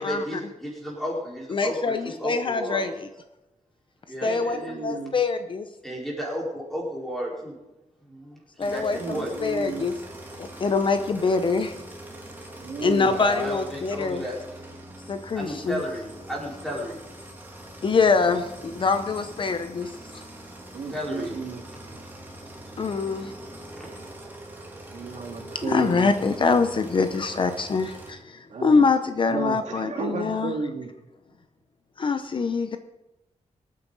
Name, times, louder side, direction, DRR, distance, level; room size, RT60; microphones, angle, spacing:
voice 1, 0.0-2.9 4.1-5.0 5.8-7.6 8.1-9.3 12.8-14.4 15.3-17.0 20.9-21.4 22.6-22.8 23.7-23.9, equal, ahead, -4 dB, 4.6 m, -33 dB
voice 2, 1.5-3.1 4.2-5.7 8.6-9.9 10.3-11.7 12.8-14.2 15.1-15.8 17.8-20.2 22.8-23.3 25.6-30.5 32.0-32.8, left 4 dB, 40° left, 8 dB, 0.7 m, -24 dB
voice 3, 4.2-5.1 8.9-9.9 12.6-13.1 20.1-20.2 20.7-21.6 23.9-24.1 24.9-26.1 28.5-28.9 29.3-30.9, right 4 dB, 70° right, 1 dB, 2.3 m, -33 dB
sound 1, 8.6-28.1, right 1 dB, 15° right, 2.9 m, -43 dB
24.0 x 9.5 x 4.0 m, 0.97 s
wide cardioid pair, 180°, 13 cm